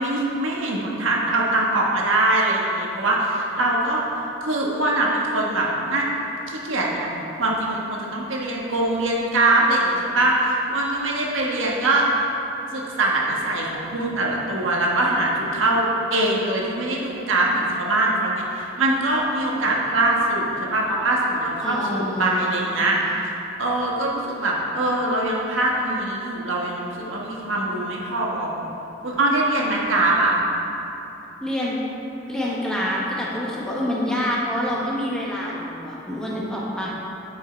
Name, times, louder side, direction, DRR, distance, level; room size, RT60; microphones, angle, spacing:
voice 1, 0.0-4.0 4.4-12.1 12.7-23.0 23.2-28.7 29.0-30.3, right 2 dB, 85° right, -3 dB, 1.4 m, -23 dB
voice 2, 21.6-23.1 31.4-31.8 32.3-36.9, left 1 dB, 5° left, -6 dB, 1.3 m, -27 dB
9.6 x 6.5 x 4.5 m, 3.0 s
head